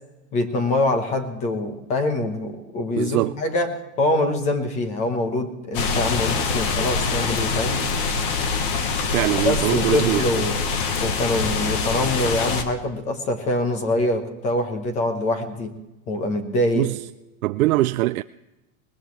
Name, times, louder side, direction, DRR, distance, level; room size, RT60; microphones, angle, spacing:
voice 1, 0.3-7.9 9.4-10.5 11.0-15.8 16.1-16.9, left 1 dB, 15° left, 0.9 m, -24 dB
voice 2, 3.0-3.4 9.1-10.3 16.8-17.0 17.4-18.2, right 18 dB, 80° right, 0.5 m, -22 dB
sound 1, 5.7-12.6, left 4 dB, 40° left, 1.3 m, -24 dB
20.0 x 19.5 x 3.1 m
supercardioid pair, 175°, 41 cm